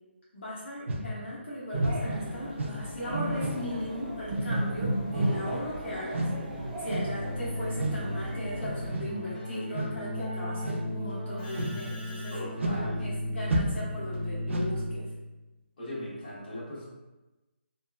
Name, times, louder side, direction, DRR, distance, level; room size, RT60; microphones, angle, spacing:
voice 1, 0.3-15.1, left 1 dB, 70° left, -9 dB, 0.9 m, -38 dB
sound 1, 0.9-1.1 1.8-2.1 2.6-2.8 3.4-3.7 4.3-4.5 5.2-5.5 6.1-6.4 6.8-7.2 7.8-8.1 8.9-9.1 9.7-10.0 10.6-10.9 11.5-11.9 12.6-12.9 13.4-13.9 14.5-14.8, right 1 dB, 85° right, 0.4 m, -32 dB
sound 2, 1.7-8.9, right 1 dB, 35° right, 0.5 m, -33 dB
Keyboard (musical), 7.0-15.3, left 1 dB, 10° left, 0.8 m, -35 dB
voice 2, 12.3-13.0 15.8-16.9, left 1 dB, 50° left, -8 dB, 1.2 m, -39 dB
2.7 x 2.3 x 2.2 m, 1.1 s
hypercardioid pair, 165°, 6 cm